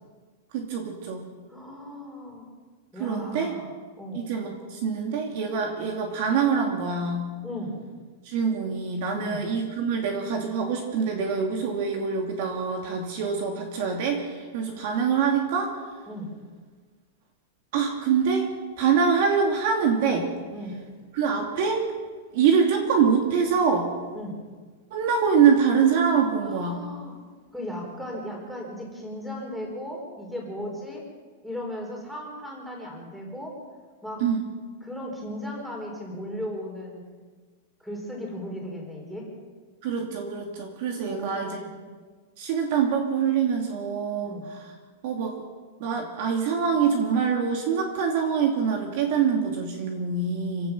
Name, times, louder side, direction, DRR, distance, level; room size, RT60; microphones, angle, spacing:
voice 1, 0.5-1.3 3.0-3.6 4.1-7.3 8.2-15.8 17.7-18.5 18.8-20.3 21.1-21.9 22.3-23.9 24.9-26.8 34.2-34.4 39.8-41.6 42.4-44.6 45.0-45.4 45.8-50.7, right 6 dB, 45° right, 2 dB, 2.7 m, -24 dB
voice 2, 1.5-2.5 2.9-3.7 4.0-4.2 7.4-7.8 9.1-9.5 16.1-16.3 20.5-20.8 24.1-24.4 26.4-27.1 27.5-31.0 31.4-33.6 34.0-34.2 34.8-37.0 37.8-39.3 41.1-41.7 44.2-44.5, equal, ahead, 0 dB, 4.3 m, -36 dB
27.0 x 16.5 x 6.2 m, 1.5 s
supercardioid pair, 170°, 0 cm